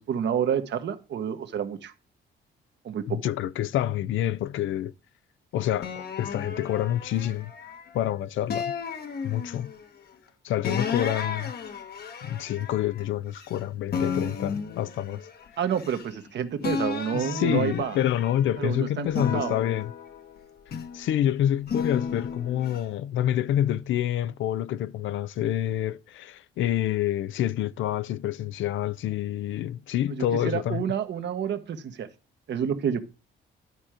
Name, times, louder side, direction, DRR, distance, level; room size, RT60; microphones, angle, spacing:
voice 1, 0.0-1.9 2.8-3.2 10.7-10.8 15.6-18.0 18.6-19.1 19.3-19.6 30.1-32.1 32.5-33.0, right 8 dB, 60° right, 1.2 m, -29 dB
voice 2, 3.1-4.9 5.5-7.5 7.9-8.7 9.2-9.7 10.4-11.5 12.2-15.2 17.1-19.9 20.9-30.8, left 11 dB, 75° left, 0.5 m, -27 dB
sound 1, 5.8-8.0 8.5-9.8 10.6-13.6 13.9-16.3 16.6-18.6 19.1-21.1 21.7-22.8, left 6 dB, 55° left, 1.2 m, -34 dB
11.0 x 4.4 x 4.9 m
cardioid pair, 90°, 20 cm